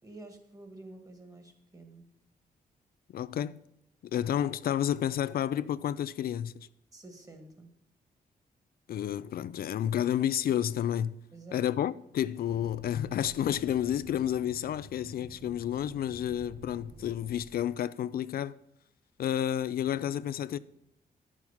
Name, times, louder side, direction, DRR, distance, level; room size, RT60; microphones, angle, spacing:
voice 1, 0.0-2.0 6.9-7.7 11.3-11.7, right 2 dB, 20° right, 1.9 m, -49 dB
voice 2, 3.1-3.6 4.1-6.7 8.9-11.1 11.5-18.5 19.2-20.6, left 10 dB, 75° left, 0.4 m, -30 dB
sound 1, 12.5-17.5, right 2 dB, 75° right, 1.6 m, -51 dB
11.0 x 7.3 x 5.8 m
cardioid pair, 105°, 16 cm